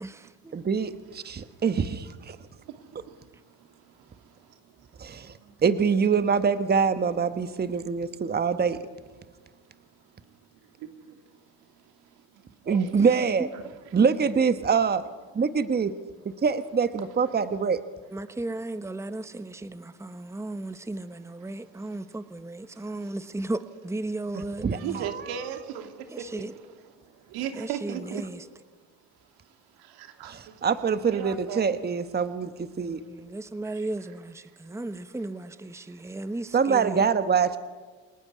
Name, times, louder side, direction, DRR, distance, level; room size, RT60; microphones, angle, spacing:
voice 1, 0.0-0.6 12.9-13.5 18.1-25.1 26.1-26.5 27.5-28.5 32.8-37.0, right 2 dB, 5° right, 12 dB, 1.1 m, -35 dB
voice 2, 0.5-2.4 5.0-5.4 5.6-8.8 12.7-13.5 13.9-15.0 15.3-15.9 16.4-17.8 24.6-25.1 30.2-33.0 36.5-37.6, right 6 dB, 25° right, 11 dB, 1.3 m, -24 dB
voice 3, 2.3-5.6 10.2-10.4 10.8-11.2 11.7-12.9 13.5-13.6 22.7-23.1 24.7-26.4 27.0-28.2 29.8-30.6 31.1-31.7 34.7-34.8 35.9-36.0, right 9 dB, 75° right, 7 dB, 2.6 m, -39 dB
28.5 x 18.5 x 9.8 m, 1.4 s
supercardioid pair, 80°, 37 cm